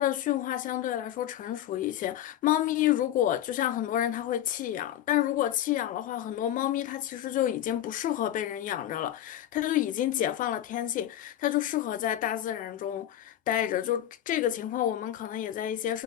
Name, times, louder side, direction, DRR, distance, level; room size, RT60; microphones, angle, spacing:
voice 1, 0.0-16.0, left 12 dB, 55° left, 0.5 m, -29 dB
3.3 x 2.0 x 2.7 m
supercardioid pair, 80°, 16 cm